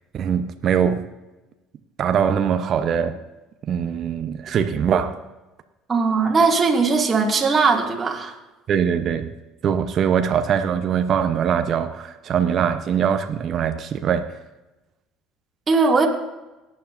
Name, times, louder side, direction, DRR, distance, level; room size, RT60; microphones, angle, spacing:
voice 1, 0.1-1.1 2.0-3.2 3.7-5.2 8.7-9.3 9.6-14.3, right 8 dB, 50° right, 8 dB, 0.8 m, -22 dB
voice 2, 5.9-8.3 15.7-16.1, right 4 dB, 30° right, 0 dB, 2.2 m, -19 dB
18.0 x 9.5 x 2.6 m, 1.1 s
hypercardioid pair, 65°, 0 cm